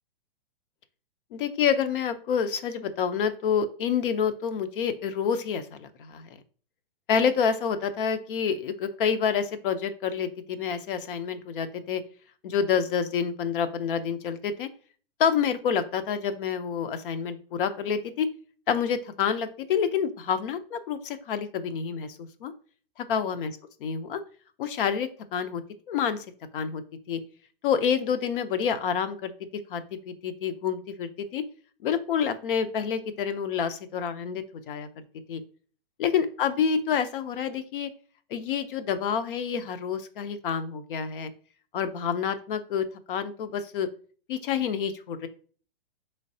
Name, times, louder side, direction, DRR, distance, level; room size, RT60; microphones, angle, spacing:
voice 1, 1.3-6.3 7.1-12.0 12.4-14.7 15.2-18.3 18.7-22.5 23.1-23.5 23.8-24.2 24.6-25.6 25.9-26.2 26.5-26.8 27.1-27.2 27.6-29.3 29.7-31.4 31.8-35.0 35.3-35.4 36.0-37.9 38.3-41.3 41.7-43.9 44.3-45.3, left 7 dB, 60° left, 11 dB, 0.6 m, -28 dB
4.5 x 3.2 x 2.6 m, 0.41 s
hypercardioid pair, 125°, 30 cm